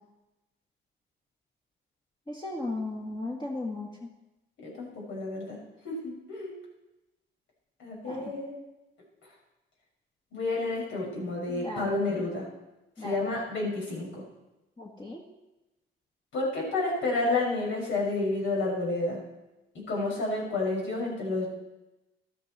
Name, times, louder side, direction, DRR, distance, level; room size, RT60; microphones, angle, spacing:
voice 1, 2.3-4.1 8.1-8.3 11.5-12.0 13.0-13.2 14.8-15.2, left 2 dB, 20° left, -3 dB, 2.0 m, -36 dB
voice 2, 4.6-5.6 5.8-6.5 7.8-8.5 10.3-12.5 13.0-14.2 16.3-19.2 19.7-21.5, left 2 dB, 75° left, -2 dB, 5.9 m, -30 dB
13.0 x 13.0 x 4.4 m, 1.0 s
cardioid pair, 90°, 20 cm